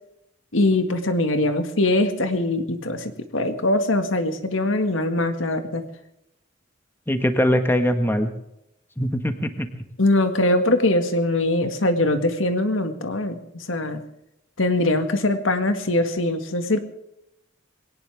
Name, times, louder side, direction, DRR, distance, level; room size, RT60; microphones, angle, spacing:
voice 1, 0.5-5.8 10.0-14.0 14.6-16.8, left 2 dB, 90° left, 7 dB, 1.9 m, -22 dB
voice 2, 7.1-8.3 9.0-9.7, equal, 10° left, 6 dB, 1.6 m, -21 dB
21.5 x 18.5 x 3.5 m, 0.82 s
head